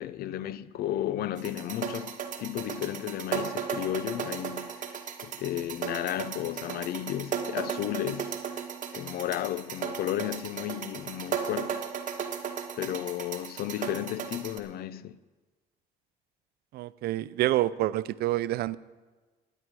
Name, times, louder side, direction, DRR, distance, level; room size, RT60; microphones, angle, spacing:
voice 1, 0.0-2.1 2.4-4.9 5.2-8.6 8.9-11.8 12.8-15.2, left 12 dB, 65° left, 0.5 m, -33 dB
sound 1, 1.4-14.6, right 7 dB, 50° right, 1.3 m, -36 dB
voice 2, 16.7-18.8, right 15 dB, 70° right, 0.4 m, -27 dB
16.0 x 10.0 x 4.7 m
cardioid pair, 110°, 17 cm